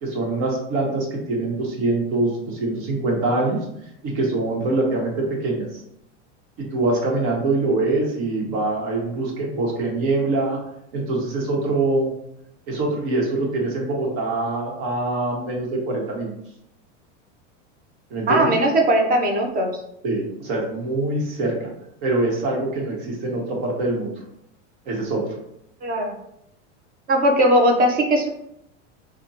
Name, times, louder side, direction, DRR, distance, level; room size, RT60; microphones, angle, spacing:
voice 1, 0.0-5.8 6.7-10.6 10.9-12.1 12.7-16.3 18.1-18.5 20.0-21.7 22.0-24.1 24.8-25.2, right 2 dB, 60° right, -1 dB, 1.1 m, -24 dB
voice 2, 18.3-19.8 25.8-26.1 27.1-28.3, right 1 dB, 25° right, 3 dB, 0.5 m, -19 dB
3.4 x 2.1 x 2.8 m, 0.77 s
supercardioid pair, 115°, 36 cm